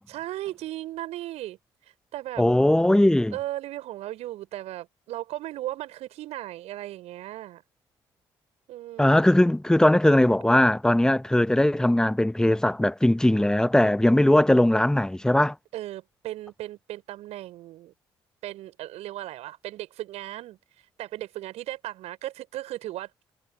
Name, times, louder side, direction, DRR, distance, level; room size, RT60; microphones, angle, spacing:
voice 1, 0.1-1.6 2.1-2.5 3.3-7.6 8.7-9.2 15.7-17.9 18.4-23.1, right 14 dB, 65° right, 4.4 m, -36 dB
voice 2, 2.4-3.3 9.0-15.5, left 1 dB, 5° left, 0.8 m, -20 dB
figure-of-eight pair, 45°, 12 cm